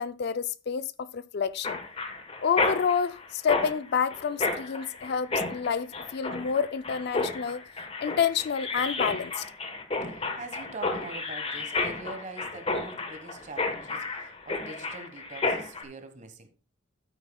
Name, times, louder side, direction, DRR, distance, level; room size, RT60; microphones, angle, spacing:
voice 1, 0.0-1.8 2.4-7.6 8.0-9.5, left 6 dB, 55° left, 0.4 m, -29 dB
Mechanisms, 1.6-15.8, left 3 dB, 30° left, 1.2 m, -32 dB
voice 2, 10.1-16.5, right 3 dB, 35° right, 1.3 m, -43 dB
12.0 x 9.0 x 2.2 m
head